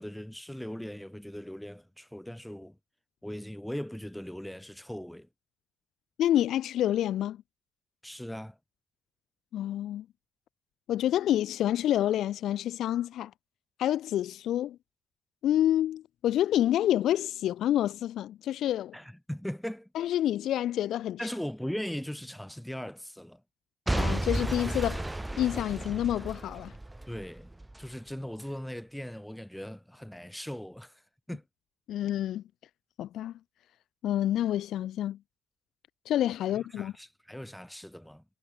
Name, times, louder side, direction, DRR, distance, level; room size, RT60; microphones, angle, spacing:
voice 1, 0.0-2.8 3.2-5.3 8.0-8.6 18.9-19.9 21.2-23.4 27.1-27.5 27.8-31.0 31.3-31.4 36.5-38.2, equal, 5° left, 1.7 m, -39 dB
voice 2, 6.2-7.4 9.5-10.1 10.9-13.3 13.8-14.8 15.4-18.9 20.0-21.2 23.9-25.0 25.4-26.7 31.9-32.4 33.0-33.3 34.0-35.2 36.1-36.9, left 12 dB, 70° left, 0.4 m, -28 dB
Boom / Shatter / Crushing, 23.9-27.9 28.4-28.5, right 1 dB, 15° right, 0.7 m, -33 dB
hypercardioid pair, 50°, 0 cm